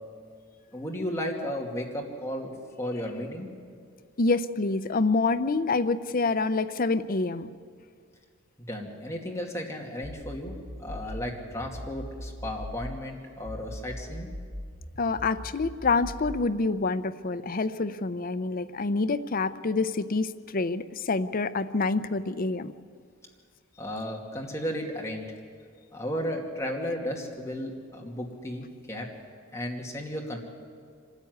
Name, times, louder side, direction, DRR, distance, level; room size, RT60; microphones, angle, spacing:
voice 1, 0.7-3.5 8.7-14.3 23.8-25.2 25.9-29.1 29.5-30.4, equal, 15° left, 0 dB, 2.5 m, -34 dB
voice 2, 4.2-7.5 15.0-22.7, left 3 dB, 45° left, 13 dB, 0.6 m, -27 dB
sound 1, 10.0-13.0 13.4-16.5, equal, 25° right, 1.7 m, -40 dB
24.5 x 13.5 x 9.6 m, 2.1 s
head